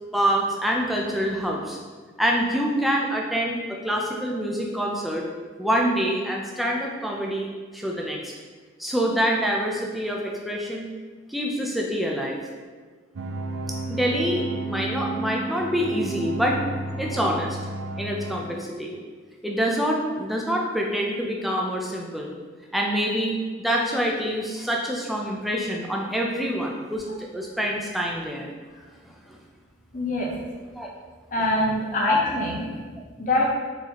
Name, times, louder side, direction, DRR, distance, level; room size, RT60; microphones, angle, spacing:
voice 1, 0.1-1.8 2.2-5.2 5.6-8.3 8.8-10.9 11.3-12.4 13.9-16.6 17.0-17.6 18.0-18.9 19.4-22.3 22.7-27.0 27.3-28.5 29.3-29.4 30.7-30.9 32.1-32.2, equal, ahead, -1 dB, 0.4 m, -26 dB
sound 1, 13.2-18.4, right 2 dB, 80° right, 0.5 m, -31 dB
voice 2, 29.9-30.3 31.3-32.7 33.2-33.5, left 1 dB, 40° left, -3 dB, 0.8 m, -24 dB
4.5 x 3.9 x 3.0 m, 1.4 s
head